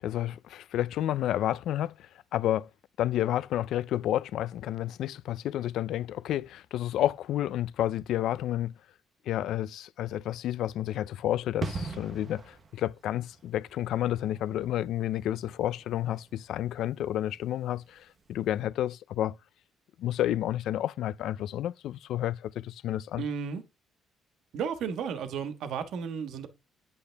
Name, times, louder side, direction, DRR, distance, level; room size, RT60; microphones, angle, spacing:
voice 1, 0.0-2.7 3.0-8.7 9.3-19.3 20.0-23.3, left 12 dB, 65° left, 0.5 m, -30 dB
sound 1, 11.6-18.1 18.4-18.5, right 4 dB, 30° right, 1.0 m, -42 dB
voice 2, 23.2-23.6 24.5-26.5, right 6 dB, 65° right, 1.5 m, -33 dB
9.7 x 8.6 x 3.5 m
cardioid pair, 170°, 0 cm